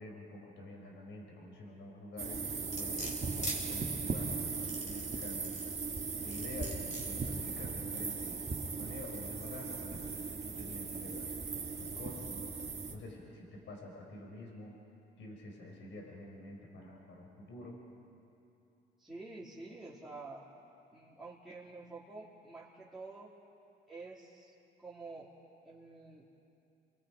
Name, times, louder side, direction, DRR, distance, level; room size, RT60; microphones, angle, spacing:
voice 1, 0.0-3.1 3.7-5.6 6.2-8.4 8.8-11.3 11.7-12.6 12.9-14.8 15.2-17.8, left 2 dB, 70° left, 0 dB, 4.5 m, -48 dB
sound 1, 2.2-13.0, right 4 dB, 35° right, 2.1 m, -38 dB
sound 2, 2.7-3.6 4.5-5.7 6.3-7.1 7.7-7.8, left 1 dB, 40° left, 5.0 m, -42 dB
voice 2, 19.0-20.4 20.9-23.3 23.9-24.5 24.8-25.3 25.6-26.2, right 3 dB, ahead, -9 dB, 3.3 m, -48 dB
29.5 x 22.0 x 5.1 m, 2.8 s
cardioid pair, 90°, 20 cm